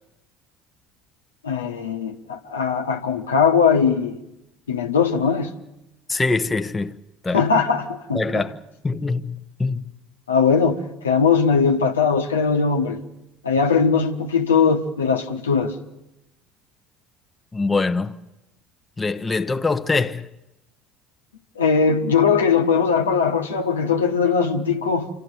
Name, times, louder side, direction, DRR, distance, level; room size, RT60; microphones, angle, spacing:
voice 1, 1.4-4.2 4.7-5.5 7.3-8.4 10.3-13.0 13.4-15.7 21.5-25.1, left 5 dB, 85° left, 1.2 m, -20 dB
voice 2, 6.1-7.0 7.2-7.4 8.1-8.6 8.8-9.9 17.5-18.1 19.0-20.3, left 3 dB, 20° left, 0.9 m, -23 dB
27.0 x 13.0 x 9.5 m
hypercardioid pair, 65°, 0 cm